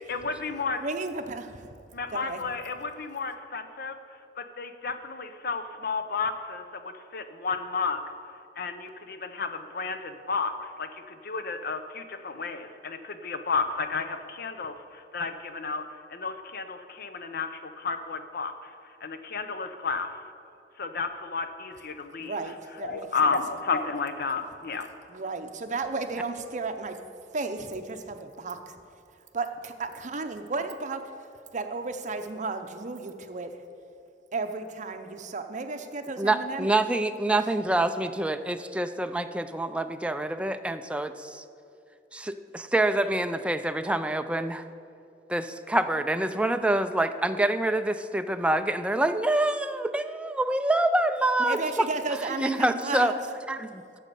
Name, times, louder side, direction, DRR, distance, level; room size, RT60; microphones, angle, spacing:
voice 1, 0.1-0.8 1.9-4.0 4.4-8.1 8.6-20.2 20.8-22.4 22.8-24.9, left 4 dB, 60° left, 9 dB, 0.7 m, -32 dB
voice 2, 0.8-1.7 2.1-2.4 22.2-23.4 25.1-27.0 27.3-28.6 29.3-31.0 31.5-33.5 34.3-36.7 51.4-53.2, right 3 dB, 45° right, 7 dB, 0.7 m, -33 dB
voice 3, 36.2-41.4 42.1-44.6 45.3-51.9 52.4-53.1 53.5-53.8, right 1 dB, 5° right, 9 dB, 0.4 m, -26 dB
9.3 x 7.3 x 6.9 m, 2.6 s
head